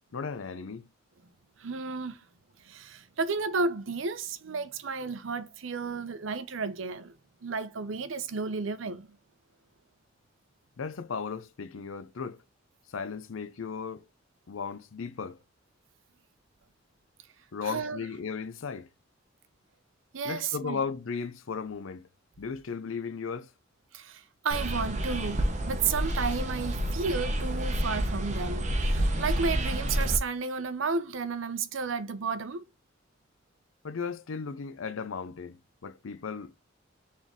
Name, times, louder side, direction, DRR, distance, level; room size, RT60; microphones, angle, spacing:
voice 1, 0.1-0.9 10.8-12.4 12.9-14.0 14.5-15.4 17.5-18.9 20.2-22.1 22.4-23.5 33.8-36.5, left 5 dB, 85° left, 0.6 m, -36 dB
voice 2, 1.6-2.2 2.6-7.1 7.4-9.2 17.6-18.0 20.1-20.8 23.9-32.6, right 4 dB, 75° right, 0.6 m, -32 dB
sound 1, 24.5-30.2, right 1 dB, 40° right, 0.8 m, -29 dB
4.3 x 3.6 x 3.0 m
head